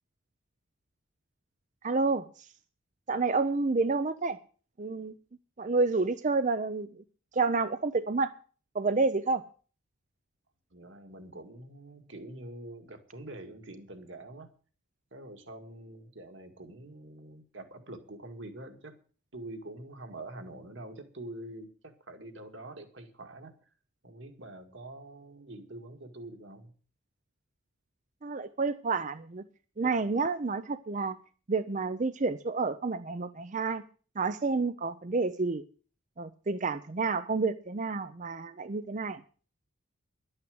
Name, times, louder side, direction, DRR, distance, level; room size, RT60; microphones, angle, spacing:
voice 1, 1.8-2.2 3.1-4.4 4.8-5.1 5.6-7.0 7.3-8.3 8.7-9.4 28.2-29.4 29.8-31.2 31.5-33.8 34.2-35.6 36.2-39.2, right 3 dB, 35° right, 12 dB, 0.5 m, -29 dB
voice 2, 10.7-14.5 15.1-18.9 19.3-23.5 24.0-26.7, right 1 dB, 60° right, 6 dB, 2.1 m, -45 dB
11.5 x 8.8 x 7.9 m, 0.40 s
head